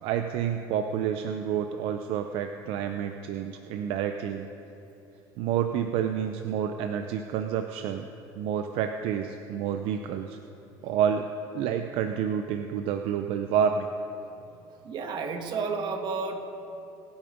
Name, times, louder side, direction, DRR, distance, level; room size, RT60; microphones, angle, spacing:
voice 1, 0.0-4.5 5.4-8.0 8.3-10.4 10.8-11.3 11.5-13.9, right 8 dB, 75° right, 7 dB, 0.6 m, -29 dB
voice 2, 14.5-16.5, right 4 dB, 50° right, 5 dB, 1.7 m, -32 dB
23.5 x 8.9 x 5.2 m, 2.9 s
cardioid pair, 125°, 10 cm